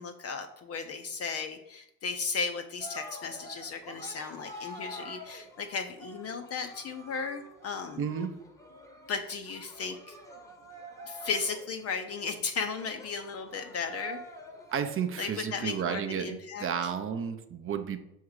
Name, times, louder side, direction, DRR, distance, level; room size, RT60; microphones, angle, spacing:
voice 1, 0.0-8.0 9.1-10.2 11.0-14.2 15.2-16.9, left 5 dB, 30° left, 6 dB, 0.5 m, -35 dB
Cheering, 2.8-15.2, equal, 5° left, 0.9 m, -47 dB
voice 2, 8.0-8.3 14.7-18.0, right 7 dB, 25° right, 8 dB, 0.6 m, -32 dB
6.2 x 3.6 x 4.7 m, 0.83 s
hypercardioid pair, 95°, 49 cm